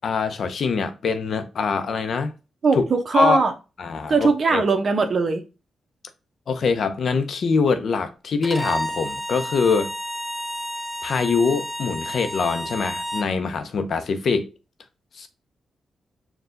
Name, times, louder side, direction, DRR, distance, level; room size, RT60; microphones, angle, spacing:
voice 1, 0.0-2.3 2.8-2.9 3.1-3.4 3.8-4.6 6.5-9.9 11.0-14.5 15.1-15.3, left 5 dB, 65° left, 0.6 m, -23 dB
voice 2, 2.6-3.5 4.1-5.4, right 4 dB, 50° right, 0.8 m, -20 dB
Bowed string instrument, 8.4-13.3, equal, 5° left, 0.6 m, -31 dB
4.5 x 2.3 x 3.8 m
cardioid pair, 80°, 0 cm